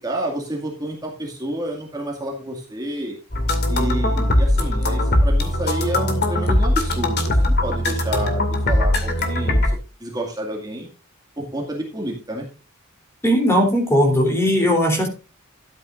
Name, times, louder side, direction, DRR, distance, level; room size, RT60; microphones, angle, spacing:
voice 1, 0.0-3.2 3.7-10.9 11.4-12.5, right 1 dB, 20° right, -1 dB, 2.2 m, -29 dB
sound 1, 3.3-9.7, left 1 dB, 50° left, 2.4 m, -20 dB
voice 2, 13.2-15.1, equal, 10° left, 2 dB, 3.4 m, -18 dB
13.0 x 9.9 x 2.6 m, 0.32 s
head